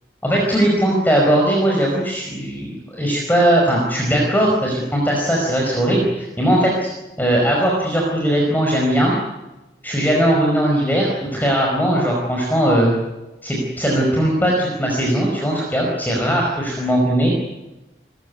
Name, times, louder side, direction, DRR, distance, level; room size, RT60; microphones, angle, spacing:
voice 1, 0.2-6.9 7.2-9.1 9.8-12.9 13.4-17.3, right 1 dB, 10° left, -2 dB, 5.0 m, -19 dB
29.0 x 15.5 x 9.6 m, 1.0 s
head